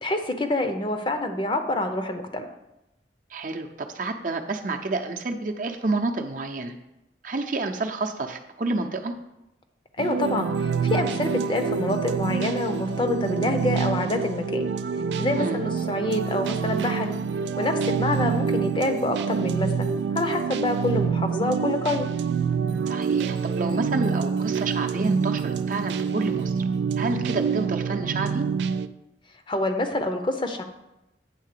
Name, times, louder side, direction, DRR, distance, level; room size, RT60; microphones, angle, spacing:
voice 1, 0.0-2.5 10.0-14.6 15.2-17.2 17.6-19.9 20.1-22.1 29.5-30.6, left 2 dB, 30° left, 6 dB, 0.6 m, -27 dB
voice 2, 3.3-6.7 7.2-9.1 15.4-15.6 22.9-26.6 27.0-28.4, right 3 dB, 50° right, 4 dB, 0.7 m, -29 dB
sound 1, 10.0-28.9, right 6 dB, 80° right, 0.3 m, -26 dB
9.1 x 3.7 x 6.7 m, 0.90 s
head